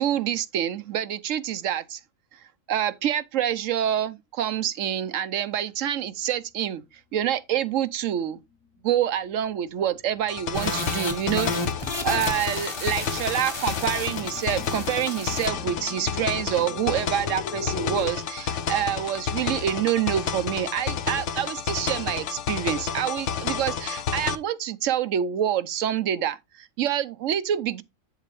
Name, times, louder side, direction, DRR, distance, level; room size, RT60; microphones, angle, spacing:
voice 1, 0.0-2.0 2.7-6.8 7.1-8.4 8.8-27.8, right 10 dB, 70° right, 1.0 m, -27 dB
sound 1, 8.4-8.8 9.2-18.1, left 6 dB, 90° left, 1.4 m, -40 dB
sound 2, 10.3-24.4, left 7 dB, 65° left, 1.0 m, -30 dB
sound 3, 10.5-15.5, left 1 dB, 20° left, 1.2 m, -33 dB
8.3 x 7.4 x 3.1 m
omnidirectional pair, 1.4 m